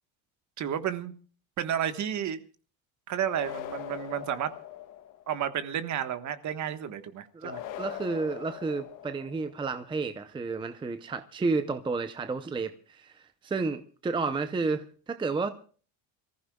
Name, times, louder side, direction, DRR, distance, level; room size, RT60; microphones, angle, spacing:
voice 1, 0.6-1.1 1.6-2.4 3.1-4.5 5.3-7.6, right 9 dB, 45° right, 1.4 m, -31 dB
sound 1, 3.2-5.3 7.4-9.5, left 12 dB, 50° left, 1.4 m, -41 dB
voice 2, 7.3-15.5, right 4 dB, 10° right, 0.6 m, -31 dB
28.0 x 15.0 x 2.3 m
cardioid pair, 145°, 41 cm